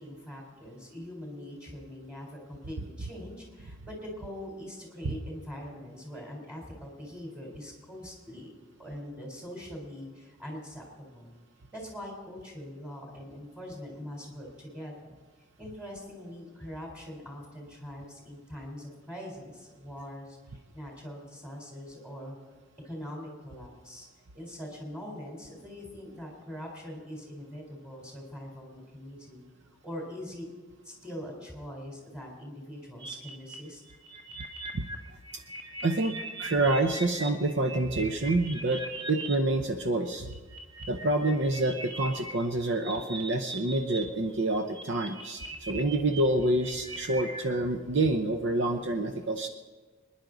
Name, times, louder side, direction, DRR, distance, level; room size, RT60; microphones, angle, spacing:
voice 1, 0.0-8.5 8.8-11.3 11.7-15.2 15.6-22.4 22.8-24.1 24.3-30.5 30.8-33.8, equal, 5° right, -1 dB, 3.8 m, -43 dB
sound 1, 33.0-39.3 40.0-44.0 44.3-47.5, right 2 dB, 25° right, 1.7 m, -41 dB
voice 2, 35.8-40.3 40.9-49.5, right 2 dB, 60° right, 6 dB, 0.8 m, -27 dB
26.0 x 10.5 x 3.9 m, 1.4 s
head